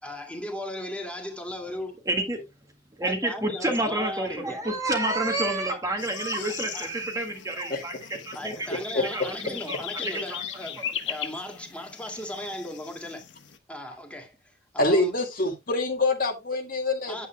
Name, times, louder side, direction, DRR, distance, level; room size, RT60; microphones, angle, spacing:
voice 1, 0.0-2.0 3.0-4.6 5.7-5.8 6.7-6.9 8.3-13.2 13.7-14.4 14.9-15.1 17.1-17.3, left 1 dB, 5° left, 2.2 m, -37 dB
voice 2, 2.0-2.4 3.0-8.0 8.2-8.6 8.9-10.4 10.8-10.9, right 2 dB, 20° right, 1.8 m, -29 dB
sound 1, 6.0-13.6, left 9 dB, 80° left, 1.0 m, -39 dB
voice 3, 14.8-17.3, left 2 dB, 50° left, 2.0 m, -25 dB
9.2 x 8.6 x 2.2 m
head